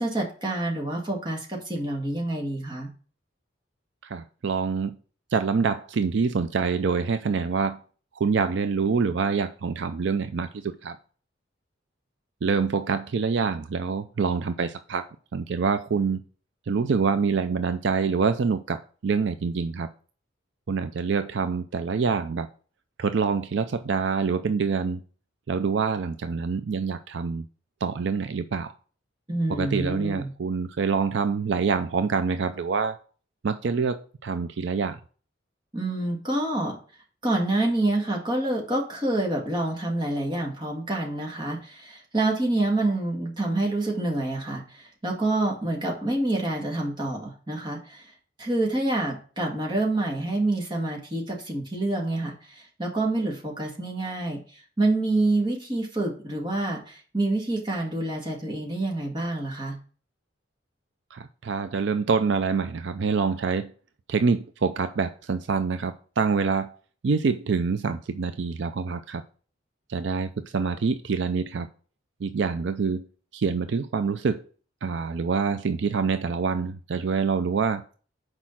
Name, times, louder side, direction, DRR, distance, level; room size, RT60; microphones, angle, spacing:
voice 1, 0.0-2.9 29.3-30.3 35.7-36.7 37.2-48.1 48.4-59.8, right 2 dB, 25° right, 0 dB, 1.9 m, -27 dB
voice 2, 4.0-4.9 5.3-7.8 8.2-11.0 12.4-15.0 15.3-16.2 16.7-19.9 20.7-22.5 23.0-25.0 25.5-27.4 27.8-28.7 29.5-33.0 33.4-35.0 61.1-63.7 64.1-66.8 67.0-69.2 69.9-71.7 72.2-73.1 73.3-74.4 74.8-77.8, right 5 dB, 65° right, 10 dB, 0.4 m, -26 dB
6.3 x 4.9 x 5.8 m, 0.40 s
head